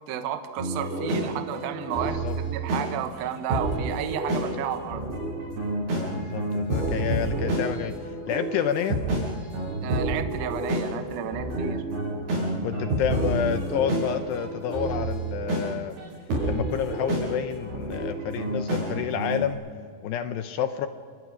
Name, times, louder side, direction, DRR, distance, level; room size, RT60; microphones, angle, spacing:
voice 1, 0.1-5.1 9.8-11.8, right 10 dB, 65° right, 7 dB, 2.5 m, -32 dB
sound 1, 0.6-19.5, right 1 dB, 50° right, 10.0 m, -29 dB
voice 2, 6.1-9.0 12.6-16.0 16.4-19.6 20.0-20.9, left 9 dB, 80° left, 9 dB, 2.4 m, -29 dB
29.5 x 24.0 x 6.2 m, 2.1 s
omnidirectional pair, 5.9 m